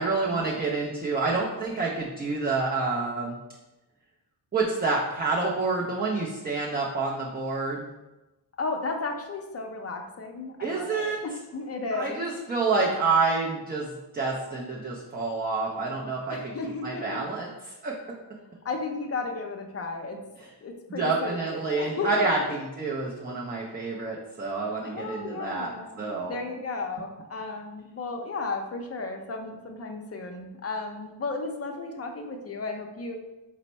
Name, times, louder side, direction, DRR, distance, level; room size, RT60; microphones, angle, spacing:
voice 1, 0.0-3.4 4.5-7.9 10.6-11.2 11.9-13.9 14.1-18.0 20.9-25.7 26.0-26.4, right 3 dB, 20° right, -2 dB, 0.4 m, -28 dB
voice 2, 8.6-12.2 16.3-17.2 18.6-20.2 20.6-22.6 24.8-33.2, left 3 dB, 30° left, 4 dB, 0.5 m, -34 dB
4.2 x 2.0 x 4.1 m, 1.0 s
cardioid pair, 85°, 48 cm